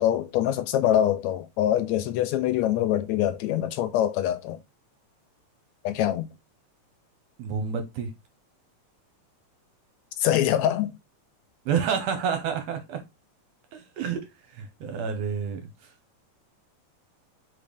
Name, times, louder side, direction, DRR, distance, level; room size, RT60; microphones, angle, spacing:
voice 1, 0.0-4.6 5.8-6.3 10.2-10.9, left 11 dB, 80° left, 1.7 m, -24 dB
voice 2, 7.4-8.1 11.6-13.0 13.7-15.6, right 7 dB, 75° right, 1.7 m, -29 dB
4.1 x 3.8 x 3.3 m
omnidirectional pair, 3.4 m